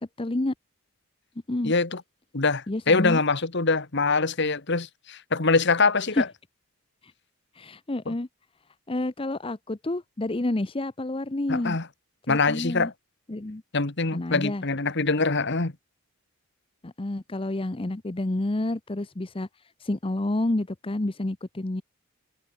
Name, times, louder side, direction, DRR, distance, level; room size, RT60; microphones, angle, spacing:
voice 1, 0.2-0.5 1.5-1.7 2.7-3.2 6.1-6.2 7.5-8.3 8.9-11.8 12.3-12.9 13.3-13.6 14.1-14.6 16.8-19.5 19.8-21.8, left 1 dB, 25° left, 0.7 m, -29 dB
voice 2, 1.6-2.0 2.3-6.3 8.1-8.2 11.5-11.9 12.3-12.9 13.7-15.7, left 3 dB, 55° left, 1.6 m, -24 dB
head